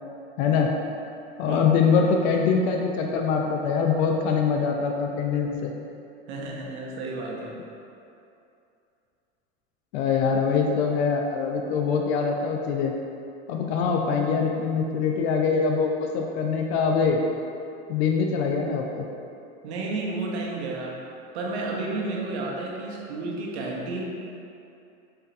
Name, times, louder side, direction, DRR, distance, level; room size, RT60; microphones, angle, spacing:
voice 1, 0.4-0.7 1.4-5.7 9.9-12.9 13.5-17.2 17.9-19.0, left 5 dB, 75° left, 2 dB, 0.5 m, -23 dB
voice 2, 6.3-7.6 19.6-21.0 21.3-24.0, right 2 dB, 90° right, -2 dB, 0.7 m, -31 dB
4.3 x 2.7 x 2.5 m, 2.7 s
supercardioid pair, 105°, 32 cm